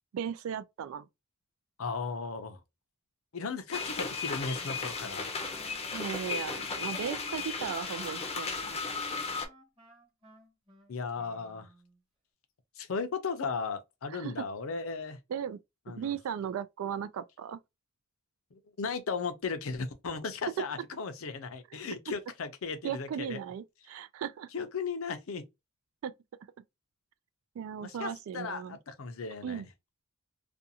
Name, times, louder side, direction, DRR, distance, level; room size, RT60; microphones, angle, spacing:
voice 1, 0.1-1.1 5.9-8.8 14.1-14.3 15.3-15.6 15.9-17.6 22.8-24.5 26.0-26.1 27.6-28.8 29.4-29.7, right 8 dB, 75° right, 0.3 m, -37 dB
voice 2, 1.8-2.6 3.3-5.3 10.9-11.7 12.8-15.2 15.9-16.1 18.5-23.4 24.5-25.4 27.8-29.6, left 4 dB, 75° left, 0.6 m, -36 dB
sound 1, 3.7-9.5, left 4 dB, 30° left, 0.6 m, -35 dB
Wind instrument woodwind instrument, 4.6-12.0, right 2 dB, 25° right, 1.0 m, -54 dB
2.5 x 2.3 x 2.7 m
head